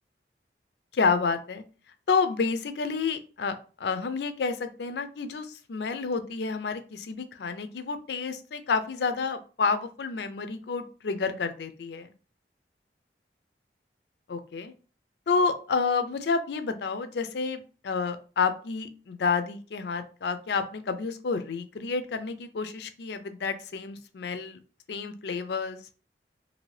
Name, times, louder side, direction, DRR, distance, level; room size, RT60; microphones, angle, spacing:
voice 1, 0.9-1.6 2.1-12.1 14.3-14.7 15.3-24.6 24.9-25.8, left 5 dB, 65° left, 10 dB, 0.4 m, -29 dB
2.7 x 2.7 x 3.1 m, 0.36 s
head